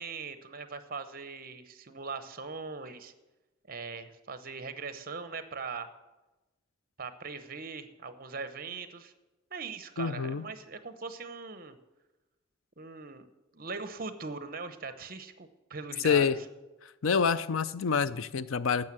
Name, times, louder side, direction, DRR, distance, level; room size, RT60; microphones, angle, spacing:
voice 1, 0.0-3.1 3.7-5.9 7.0-9.1 9.5-11.8 12.8-13.3 13.5-16.3, right 4 dB, 45° right, 0.9 m, -40 dB
voice 2, 10.0-10.4 16.0-16.4 16.8-18.9, left 6 dB, 90° left, 0.5 m, -27 dB
12.0 x 7.7 x 7.5 m
head